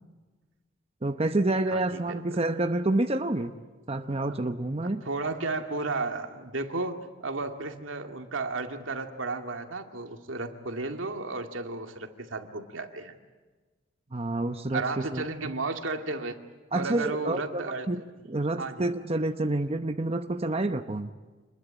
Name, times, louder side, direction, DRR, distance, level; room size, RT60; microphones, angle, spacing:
voice 1, 1.0-3.5 3.9-5.0 14.1-15.3 16.7-18.0 18.3-21.1, right 2 dB, 30° right, 7 dB, 0.9 m, -28 dB
voice 2, 1.7-2.4 4.1-4.5 5.1-13.1 14.7-16.4 16.7-17.9 18.6-18.8, right 3 dB, 80° right, 5 dB, 2.3 m, -33 dB
27.0 x 21.5 x 8.9 m, 1.3 s
head